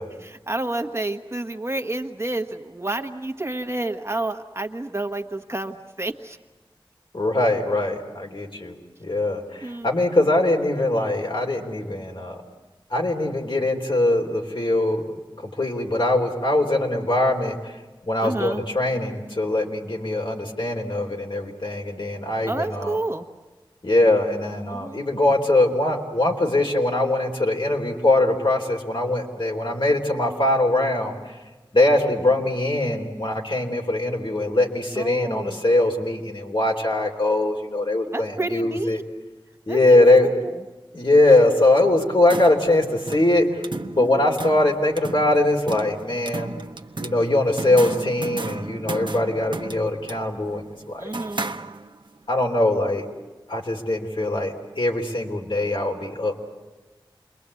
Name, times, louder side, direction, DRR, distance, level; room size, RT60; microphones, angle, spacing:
voice 1, 0.2-6.4 9.6-9.9 18.2-18.6 22.5-23.2 24.7-25.0 35.0-35.6 38.1-39.0 39.7-40.6 44.0-44.3 51.0-51.5, right 2 dB, 30° right, 6 dB, 1.3 m, -30 dB
voice 2, 7.1-8.7 9.0-12.4 12.9-15.2 15.4-17.7 18.1-23.0 23.8-31.1 31.7-39.0 39.7-40.3 40.9-43.5 43.9-46.5 47.0-51.0 52.3-53.1 53.5-56.4, left 2 dB, 65° left, 1 dB, 3.3 m, -22 dB
sound 1, 42.0-52.2, right 3 dB, 60° right, 1.1 m, -35 dB
28.5 x 22.0 x 8.4 m, 1.2 s
wide cardioid pair, 55°, 9 cm